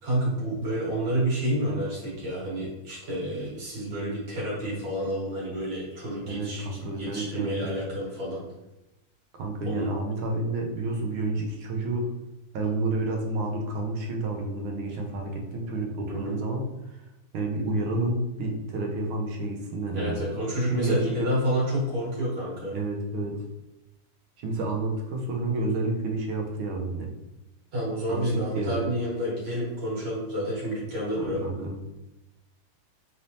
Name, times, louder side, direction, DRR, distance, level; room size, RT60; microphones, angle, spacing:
voice 1, 0.0-8.4 9.7-9.9 16.1-16.4 19.9-22.8 27.7-31.4, equal, 65° right, -6 dB, 2.4 m, -29 dB
voice 2, 6.3-7.8 9.3-12.1 12.5-17.0 17.3-20.2 20.7-21.3 22.7-23.4 24.4-27.1 28.1-28.9 31.1-31.8, right 2 dB, 90° right, 1 dB, 1.6 m, -30 dB
4.2 x 3.3 x 2.7 m, 0.94 s
omnidirectional pair, 2.2 m